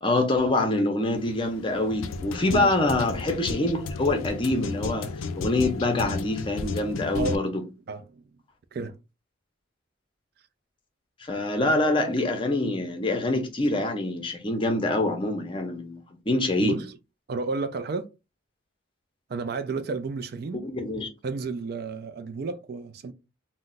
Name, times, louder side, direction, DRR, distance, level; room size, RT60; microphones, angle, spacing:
voice 1, 0.0-7.6 11.2-16.8 20.5-21.1, left 2 dB, 25° left, 0.6 m, -25 dB
sound 1, 1.2-7.3, left 4 dB, 85° left, 0.3 m, -33 dB
voice 2, 7.1-7.5 7.9-8.4 8.7-9.0 16.6-17.0 17.3-18.1 19.3-20.6 21.2-23.1, right 4 dB, 50° right, 0.3 m, -32 dB
2.3 x 2.1 x 3.8 m
head